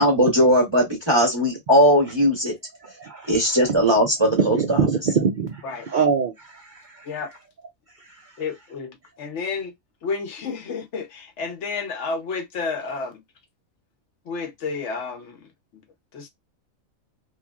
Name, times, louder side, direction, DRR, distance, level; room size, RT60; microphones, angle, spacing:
voice 1, 0.0-2.6 3.3-4.9, equal, 25° right, 0.8 m, -19 dB
voice 2, 3.0-3.3 4.4-6.6, right 6 dB, 80° right, 0.4 m, -23 dB
voice 3, 8.4-9.7 10.0-13.2 14.3-15.4 15.7-15.8 16.1-16.3, left 4 dB, 65° left, 0.9 m, -31 dB
3.0 x 2.5 x 2.3 m
omnidirectional pair, 1.4 m